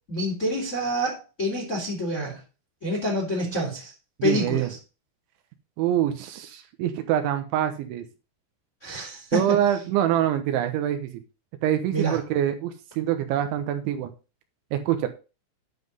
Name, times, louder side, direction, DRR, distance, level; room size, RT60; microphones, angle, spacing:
voice 1, 0.1-2.4 2.8-3.9 4.2-4.8 8.8-9.6 11.9-12.2, equal, 25° left, 0 dB, 1.7 m, -27 dB
voice 2, 4.2-4.7 5.8-8.0 9.3-11.2 11.6-14.1 14.7-15.1, right 11 dB, 75° right, 8 dB, 3.1 m, -25 dB
9.5 x 5.8 x 5.4 m, 0.31 s
omnidirectional pair, 5.7 m